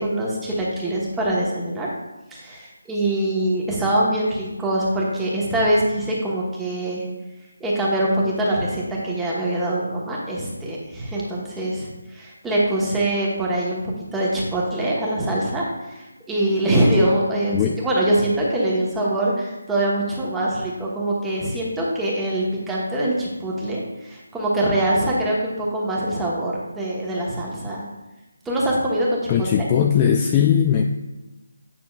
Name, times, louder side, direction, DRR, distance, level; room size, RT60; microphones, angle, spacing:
voice 1, 0.0-1.9 2.3-7.0 7.6-13.8 14.1-27.8 28.4-29.3 29.6-29.7, right 1 dB, 5° right, -6 dB, 1.2 m, -23 dB
voice 2, 29.3-30.8, left 8 dB, 20° left, 3 dB, 0.3 m, -19 dB
8.7 x 5.8 x 2.4 m, 1.1 s
figure-of-eight pair, 160°, 0 cm